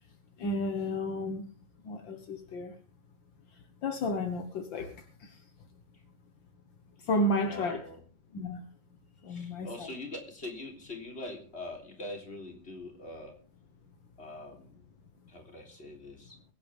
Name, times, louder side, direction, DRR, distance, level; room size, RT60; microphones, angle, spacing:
voice 1, 0.4-1.5 1.8-2.7 3.8-5.4 7.0-7.8 8.3-8.6 9.2-9.9, left 1 dB, 60° left, 7 dB, 1.2 m, -32 dB
voice 2, 7.4-8.0 9.2-13.4 14.2-14.9 15.3-16.4, left 2 dB, 20° left, 2 dB, 3.5 m, -43 dB
23.0 x 10.0 x 3.5 m, 0.36 s
omnidirectional pair, 3.8 m